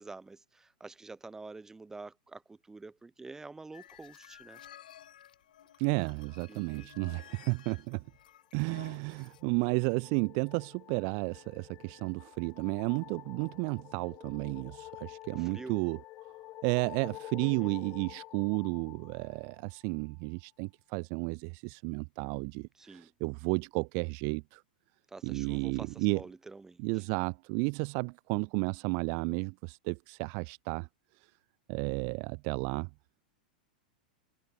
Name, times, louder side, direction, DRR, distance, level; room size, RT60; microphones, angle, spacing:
voice 1, 0.0-4.6 6.5-6.9 15.3-15.8 17.4-17.7 22.8-23.1 25.1-26.8, right 3 dB, 10° right, 3.9 m, -48 dB
sound 1, 3.7-9.4, left 11 dB, 70° left, 5.1 m, -54 dB
voice 2, 5.8-8.0 8.5-16.0 16.6-24.6 25.2-26.2 26.8-30.9 31.2-31.3 31.7-32.9, right 40 dB or more, 45° right, 0.6 m, -32 dB
sound 2, 8.5-20.0, left 17 dB, 40° left, 0.7 m, -50 dB
figure-of-eight pair, 95°, 5 cm